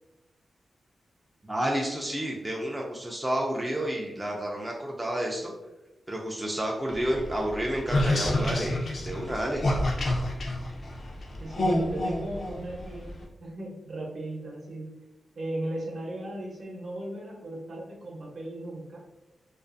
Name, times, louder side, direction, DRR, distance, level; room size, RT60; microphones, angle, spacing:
voice 1, 1.4-5.5 6.1-9.6, right 1 dB, 10° right, -2 dB, 0.4 m, -30 dB
sound 1, 6.9-13.2, left 1 dB, 55° left, 0.5 m, -29 dB
voice 2, 11.4-14.9 15.3-19.0, right 1 dB, 60° right, -2 dB, 0.7 m, -37 dB
2.4 x 2.3 x 2.5 m, 1.0 s
wide cardioid pair, 100°, 0 cm